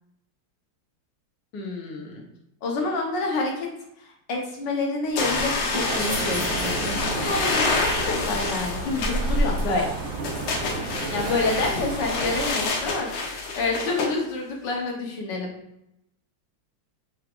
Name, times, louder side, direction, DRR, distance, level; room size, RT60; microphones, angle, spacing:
voice 1, 1.5-2.2 2.6-3.7 4.0-9.9 11.1-13.1 13.6-15.5, left 3 dB, 60° left, 0 dB, 1.4 m, -28 dB
sound 1, 5.1-12.9, right 2 dB, 85° right, 0.7 m, -30 dB
sound 2, 5.2-14.1, left 3 dB, 85° left, 1.7 m, -28 dB
5.8 x 3.1 x 2.5 m, 0.80 s
omnidirectional pair, 2.4 m